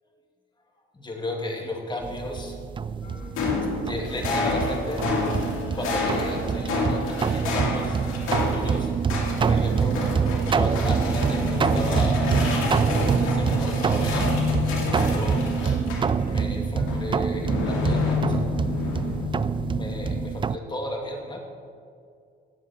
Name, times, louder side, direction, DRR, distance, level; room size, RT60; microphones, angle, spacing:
voice 1, 0.9-2.6 3.8-5.1 5.7-8.0 8.4-8.9 9.4-10.0 10.5-12.7 13.2-14.3 14.9-15.4 16.1-18.6 19.7-21.4, left 1 dB, 25° left, 1 dB, 2.4 m, -34 dB
sound 1, 2.0-20.6, right 6 dB, 25° right, 0.3 m, -26 dB
sound 2, 3.0-16.4 16.8-19.5, left 3 dB, 85° left, 2.5 m, -30 dB
sound 3, 11.3-20.3, left 8 dB, 40° left, 0.5 m, -31 dB
18.0 x 7.3 x 4.4 m, 2.3 s
cardioid pair, 90°, 20 cm